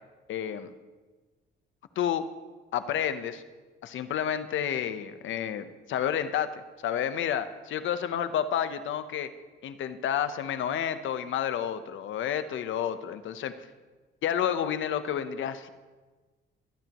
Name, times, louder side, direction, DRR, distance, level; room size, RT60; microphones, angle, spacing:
voice 1, 0.3-0.7 2.0-2.3 2.7-3.4 3.8-9.3 9.6-13.5 14.2-15.7, left 9 dB, 75° left, 11 dB, 0.9 m, -30 dB
22.0 x 14.0 x 3.0 m, 1.3 s
cardioid pair, 90°, 20 cm